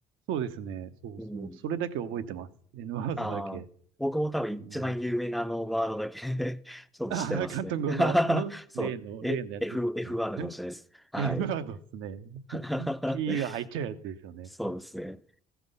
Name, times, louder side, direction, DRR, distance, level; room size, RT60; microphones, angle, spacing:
voice 1, 0.3-2.5 2.7-3.6 4.6-5.0 7.1-9.6 10.0-10.5 11.2-12.9 13.1-14.5, right 8 dB, 70° right, 0.9 m, -34 dB
voice 2, 1.2-1.6 3.2-3.6 4.0-8.9 9.2-10.8 11.1-11.5 12.5-13.5 14.6-15.2, equal, ahead, 0.5 m, -31 dB
15.0 x 6.0 x 5.4 m
supercardioid pair, 70°, 21 cm